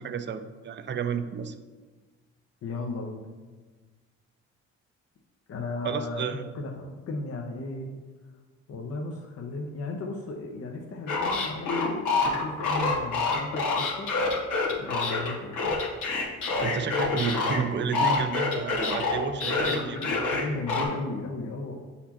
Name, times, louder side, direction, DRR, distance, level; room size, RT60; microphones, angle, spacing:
voice 1, 0.0-1.5 5.8-6.4 16.6-20.0, right 6 dB, 40° right, 9 dB, 0.5 m, -31 dB
voice 2, 2.6-3.3 5.5-7.9 8.7-14.1 14.8-15.8 19.4-21.8, left 2 dB, 55° left, 2 dB, 0.7 m, -35 dB
sound 1, 11.1-17.6 17.9-20.9, left 3 dB, 90° left, 1.4 m, -26 dB
8.1 x 4.1 x 2.9 m, 1.3 s
cardioid pair, 90°, 30 cm